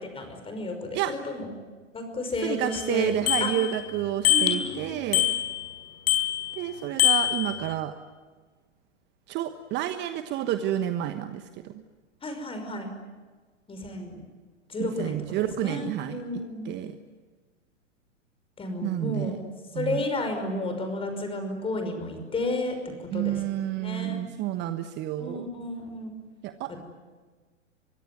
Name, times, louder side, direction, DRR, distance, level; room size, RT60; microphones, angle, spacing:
voice 1, 0.0-1.5 1.9-3.1 3.4-3.5 4.3-5.4 12.2-12.9 13.7-14.2 14.7-16.7 18.6-19.4 19.7-23.4 23.8-24.2 25.2-26.1 26.7-26.8, left 2 dB, 15° left, 6 dB, 5.7 m, -32 dB
voice 2, 2.4-5.3 6.5-7.9 9.3-11.8 14.8-17.0 18.8-19.4 19.7-20.0 23.1-25.5 26.4-26.7, right 12 dB, 30° right, 9 dB, 1.2 m, -30 dB
Bicycle bell, 2.7-2.8 3.3-3.9 4.2-4.7 5.1-5.7 6.1-6.6 7.0-7.7, left 12 dB, 55° left, 5.2 m, -24 dB
24.0 x 23.5 x 9.7 m, 1.4 s
figure-of-eight pair, 105°, 37 cm